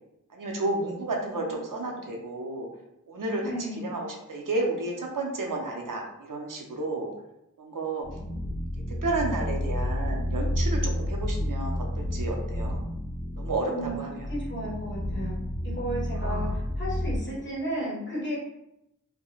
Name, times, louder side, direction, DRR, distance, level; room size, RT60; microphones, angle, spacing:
voice 1, 0.3-2.7 3.1-3.4 3.8-7.1 7.6-8.1 9.0-12.8 13.4-14.3 16.2-16.5, right 2 dB, 80° right, 0 dB, 0.5 m, -32 dB
voice 2, 1.1-1.7 3.4-4.0 13.6-15.4 15.6-18.4, equal, 35° left, -6 dB, 1.2 m, -34 dB
sound 1, 8.0-17.2, left 1 dB, 75° left, 0.8 m, -30 dB
3.0 x 2.1 x 2.3 m, 0.84 s
wide cardioid pair, 50°, 32 cm